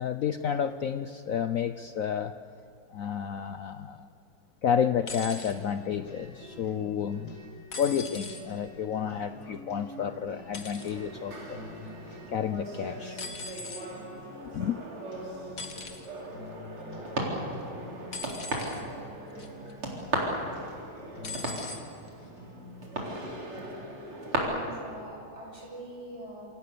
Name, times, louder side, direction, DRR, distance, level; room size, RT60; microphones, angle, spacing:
voice 1, 0.0-2.3 2.9-4.1 4.6-7.3 7.8-11.7 12.3-13.2 14.5-14.8, left 8 dB, 85° left, 10 dB, 0.7 m, -30 dB
sound 1, 5.1-5.5 7.7-8.4 10.5-10.9 13.2-13.9 15.6-16.1 18.1-18.8 19.4-19.7 21.2-21.8 22.8-22.9, left 3 dB, 40° left, 2.3 m, -40 dB
sound 2, 5.4-24.0, left 1 dB, 60° left, 6.6 m, -47 dB
sound 3, 10.8-24.4, right 2 dB, 90° right, 4.9 m, -37 dB
voice 2, 24.3-26.5, equal, 30° right, -1 dB, 7.0 m, -43 dB
27.5 x 26.5 x 6.8 m, 2.9 s
omnidirectional pair, 2.3 m